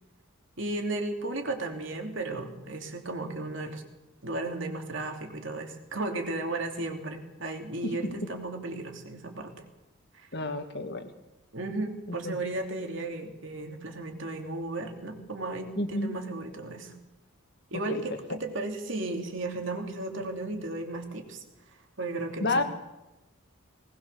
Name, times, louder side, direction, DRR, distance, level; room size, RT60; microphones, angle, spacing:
voice 1, 0.6-3.8 4.2-9.5 10.1-10.3 11.5-16.9 17.7-21.4 22.0-22.6, right 2 dB, 60° right, 4 dB, 3.0 m, -34 dB
voice 2, 10.3-11.0 12.2-12.4 15.8-16.1 17.9-18.0 22.4-22.6, left 2 dB, 50° left, 7 dB, 1.9 m, -29 dB
19.5 x 19.5 x 6.9 m, 0.99 s
head